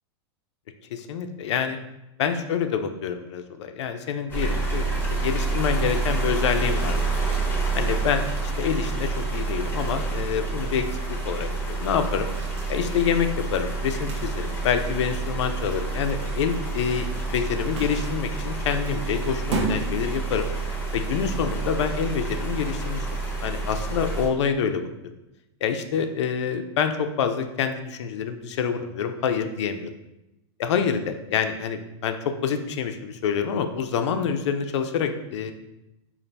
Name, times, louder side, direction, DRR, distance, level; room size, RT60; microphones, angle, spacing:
voice 1, 0.9-1.8 2.2-7.2 7.7-12.3 12.7-20.5 20.9-23.1 23.4-24.9 25.6-29.9 30.6-35.5, left 7 dB, 85° left, 8 dB, 0.4 m, -27 dB
sound 1, 4.3-24.3, right 3 dB, 15° left, 0.7 m, -28 dB
sound 2, 4.9-21.0, right 4 dB, 80° right, 0.6 m, -40 dB
4.0 x 2.4 x 3.3 m, 0.92 s
supercardioid pair, 140°, 15 cm